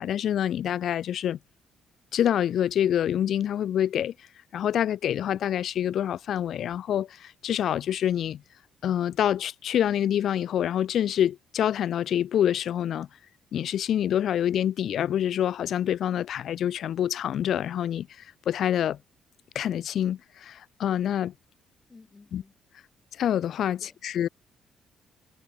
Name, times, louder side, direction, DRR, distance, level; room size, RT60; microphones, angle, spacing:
voice 1, 0.0-1.4 2.1-4.1 4.5-8.4 8.8-13.1 13.5-18.1 18.5-19.0 19.5-21.3 22.3-22.4 23.2-24.3, left 10 dB, 70° left, 0.5 m, -26 dB
voice 2, 21.9-22.5 23.8-24.0, left 3 dB, 25° left, 5.4 m, -53 dB
cardioid pair, 90°, 0 cm